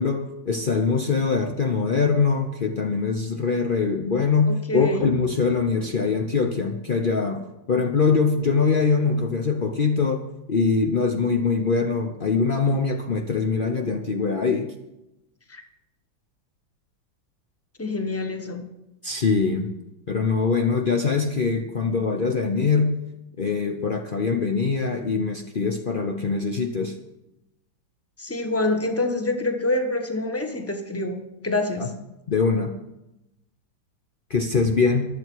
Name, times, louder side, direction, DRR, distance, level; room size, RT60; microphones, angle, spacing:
voice 1, 0.0-7.4 7.7-14.7 19.0-19.7 20.1-23.0 23.4-26.9 31.8-31.9 32.3-32.7 34.3-35.0, left 4 dB, 55° left, 4 dB, 0.5 m, -23 dB
voice 2, 4.5-5.1 15.5-15.6 17.8-18.7 28.2-31.9, left 2 dB, 10° left, 5 dB, 0.9 m, -26 dB
23.5 x 7.9 x 4.7 m, 0.91 s
omnidirectional pair, 2.2 m